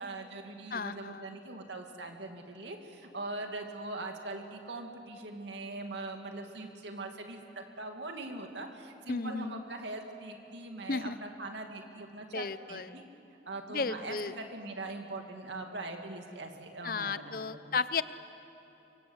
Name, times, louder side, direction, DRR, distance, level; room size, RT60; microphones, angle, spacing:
voice 1, 0.0-13.0 13.5-17.4 17.7-17.8, right 2 dB, 75° right, 3 dB, 2.5 m, -41 dB
voice 2, 0.7-1.3 9.1-9.6 10.9-11.2 12.3-12.9 13.7-14.3 16.8-18.0, left 4 dB, 50° left, 14 dB, 0.7 m, -34 dB
26.0 x 24.5 x 8.1 m, 3.0 s
head